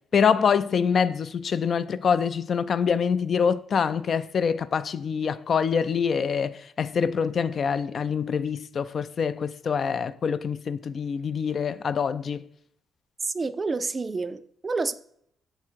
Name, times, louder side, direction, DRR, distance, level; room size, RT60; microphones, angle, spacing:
voice 1, 0.1-12.4, left 6 dB, 50° left, 0.3 m, -25 dB
voice 2, 13.2-14.9, right 3 dB, 30° right, 0.3 m, -29 dB
6.6 x 3.6 x 4.4 m
cardioid pair, 90°, 0 cm